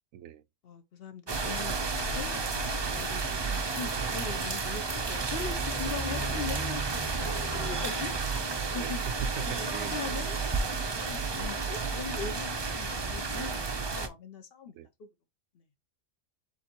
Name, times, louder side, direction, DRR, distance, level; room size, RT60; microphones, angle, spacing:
voice 1, 0.1-0.4 5.9-6.4 8.7-10.0 14.7-14.9, right 9 dB, 85° right, 1.0 m, -41 dB
voice 2, 0.6-8.1 8.7-9.0 9.4-10.4 10.7-14.7 15.0-15.1, left 6 dB, 60° left, 0.7 m, -41 dB
sound 1, 1.3-14.1, right 4 dB, 35° right, 0.4 m, -31 dB
sound 2, 5.6-12.2, left 3 dB, 20° left, 0.8 m, -47 dB
7.1 x 2.6 x 2.9 m
omnidirectional pair, 1.4 m